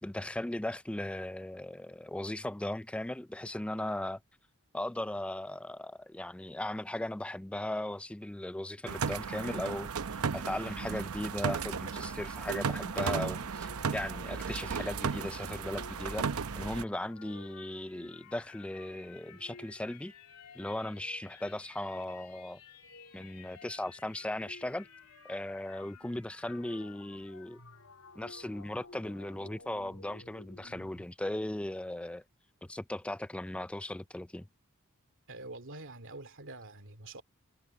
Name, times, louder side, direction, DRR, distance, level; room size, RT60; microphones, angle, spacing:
voice 1, 0.0-4.2 4.7-16.3 16.6-20.1 20.6-22.6 23.1-24.9 25.2-27.6 28.2-32.2 32.7-34.5, left 1 dB, 5° left, 0.3 m, -37 dB
sound 1, 8.9-16.8, right 5 dB, 75° right, 0.7 m, -35 dB
sound 2, 13.0-31.1, left 4 dB, 85° left, 3.0 m, -54 dB
voice 2, 35.3-37.2, right 2 dB, 60° right, 2.5 m, -46 dB
head